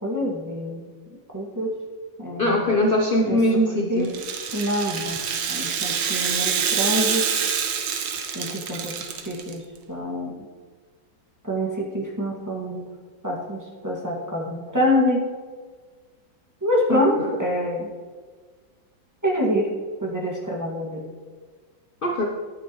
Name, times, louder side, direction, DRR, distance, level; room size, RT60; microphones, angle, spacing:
voice 1, 0.0-0.9 1.3-1.7 2.2-2.7 3.3-3.4 3.9-4.1 4.5-5.2 5.5-7.3 8.3-10.3 11.4-12.8 13.2-15.2 16.6-17.9 19.2-19.7 20.0-21.0, left 1 dB, 10° right, -3 dB, 1.8 m, -26 dB
voice 2, 2.4-4.1 16.9-17.0 22.0-22.3, left 1 dB, 60° left, 1 dB, 0.5 m, -21 dB
Rattle (instrument), 4.0-9.5, right 7 dB, 70° right, 1.5 m, -26 dB
11.5 x 9.1 x 3.1 m, 1.5 s
omnidirectional pair, 2.1 m